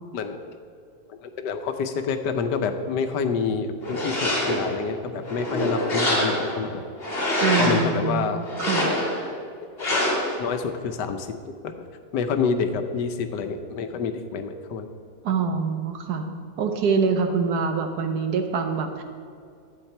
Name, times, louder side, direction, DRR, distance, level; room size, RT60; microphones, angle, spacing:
voice 1, 1.1-6.8 7.6-8.4 9.8-10.0 10.4-11.6 12.1-14.9 15.3-15.4, left 5 dB, 85° left, 8 dB, 1.4 m, -28 dB
sound 1, 3.8-4.7 5.2-6.6 7.0-7.9 8.5-9.2 9.8-10.4, left 1 dB, 35° left, 2.2 m, -25 dB
voice 2, 7.4-8.9 15.2-16.3 16.6-19.0, right 5 dB, 75° right, 6 dB, 1.4 m, -25 dB
11.0 x 8.1 x 4.4 m, 2.4 s
omnidirectional pair, 1.8 m